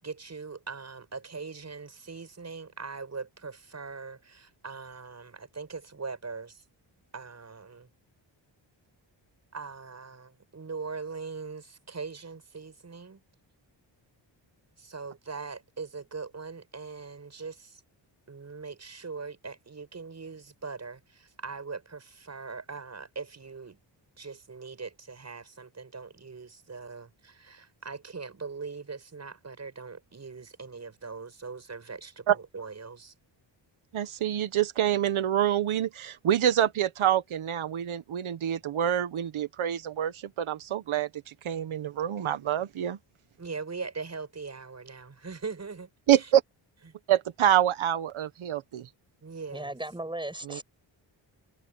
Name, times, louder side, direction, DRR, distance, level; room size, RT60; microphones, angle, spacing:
voice 1, 0.0-6.6 7.1-7.9 9.5-13.2 14.8-17.8 18.3-23.8 24.2-33.1 43.4-45.9 46.2-46.3 46.9-47.0 49.2-49.7, right 4 dB, 35° right, 7.6 m, -41 dB
voice 2, 33.9-41.1 41.4-43.0 46.1-46.4 47.1-48.9 50.5-50.6, right 11 dB, 85° right, 1.3 m, -26 dB
voice 3, 49.5-50.6, right 1 dB, 10° right, 7.7 m, -36 dB
wide cardioid pair, 145°, 47 cm